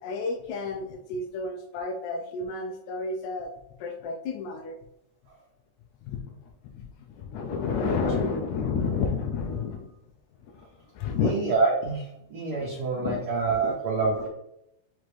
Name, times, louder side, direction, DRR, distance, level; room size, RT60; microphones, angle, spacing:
voice 1, 0.0-3.5 3.8-4.8 6.0-6.3 6.7-9.9 10.5-10.7 10.9-11.3 12.5-12.7 13.0-13.2 13.6-13.8, left 4 dB, 80° left, 1 dB, 1.8 m, -30 dB
voice 2, 11.2-14.3, right 4 dB, 85° right, -2 dB, 1.2 m, -27 dB
5.9 x 2.5 x 3.1 m, 0.81 s
omnidirectional pair, 3.4 m